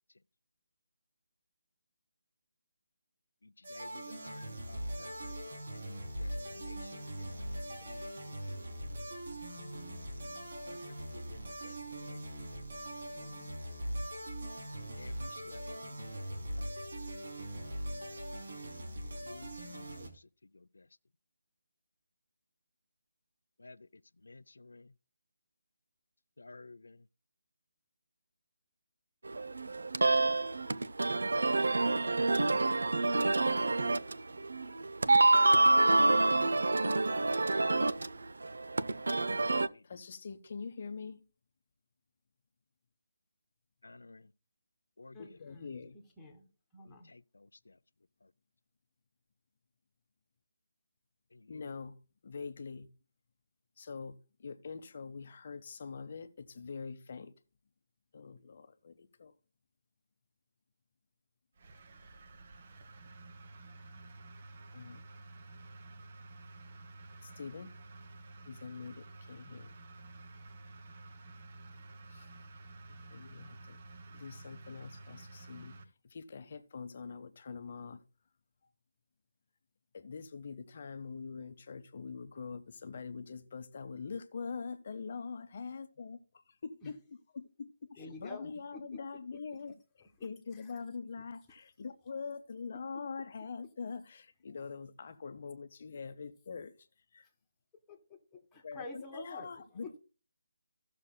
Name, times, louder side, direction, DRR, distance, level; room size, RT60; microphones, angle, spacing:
sound 1, 3.6-20.1, right 1 dB, 65° right, 3.1 m, -41 dB
voice 1, 3.7-5.3 5.7-6.3 6.6-7.0 7.8-8.2 10.7-11.7 12.0-12.2 13.1-13.5 15.0-15.6 16.3-16.7 19.2-19.5 20.0-20.1 23.6-23.8 24.2-24.9 26.4-27.0 32.0-33.0 39.3-39.8 43.8-44.2 45.0-45.2 47.1-47.2, left 3 dB, 85° left, 0.4 m, -54 dB
sound 2, 29.2-39.7, right 2 dB, 80° right, 0.5 m, -27 dB
voice 2, 39.8-41.2 45.2-46.0 51.5-52.0 52.2-52.9 53.8-57.3 58.1-59.3 64.7-65.0 67.2-67.7 68.5-69.7 72.1-72.3 72.9-73.8 74.1-75.7 76.0-78.0 79.9-86.2 86.6-96.7 97.1-97.3 98.6-100.0, left 5 dB, 45° left, 0.7 m, -44 dB
voice 3, 45.1-45.9 46.2-46.5 46.7-47.1 86.8-86.9 88.0-89.0 90.7-90.8 92.7-92.8 97.9-99.5 99.8-99.9, left 2 dB, 5° left, 1.5 m, -48 dB
sound 3, 61.6-75.8, right 2 dB, 40° right, 1.0 m, -51 dB
17.0 x 6.7 x 2.2 m
hypercardioid pair, 165°, 0 cm